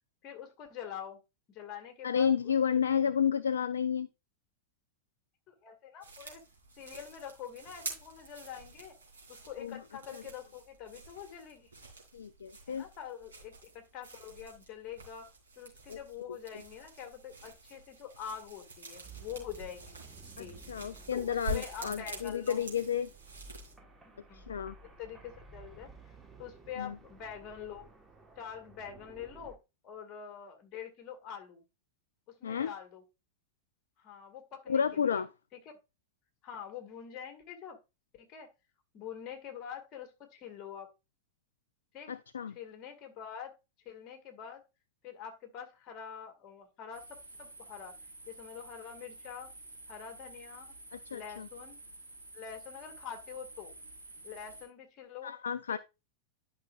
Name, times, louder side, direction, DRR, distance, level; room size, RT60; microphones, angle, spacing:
voice 1, 0.2-1.2 1.5-2.3 5.5-6.4 6.8-8.9 9.3-11.7 12.7-15.3 15.6-20.1 20.4-20.6 21.1-22.6 24.1-24.5 25.0-25.9 26.4-27.9 28.4-29.6 29.8-31.6 32.3-33.0 34.0-35.2 35.7-35.8 36.4-37.8 38.1-38.5 38.9-40.9 41.9-42.1 42.5-43.5 43.9-44.6 45.0-48.0 48.3-49.5 49.9-50.8 51.1-51.8 52.3-53.7 54.2-55.3 55.7-55.8, left 8 dB, 35° left, 1.9 m, -45 dB
voice 2, 2.0-4.1 9.6-9.8 10.1-10.2 12.1-12.8 15.9-16.0 20.4-23.1 24.3-24.7 26.8-27.0 32.4-32.7 34.7-35.3 42.1-42.6 50.9-51.5 55.2-55.8, left 7 dB, 70° left, 0.3 m, -31 dB
sound 1, 6.0-23.7, right 2 dB, 70° right, 3.0 m, -47 dB
sound 2, 19.0-29.6, right 3 dB, 15° right, 1.3 m, -54 dB
sound 3, 46.9-54.6, right 2 dB, 85° right, 3.9 m, -51 dB
11.0 x 5.7 x 2.4 m
figure-of-eight pair, 90°, 0 cm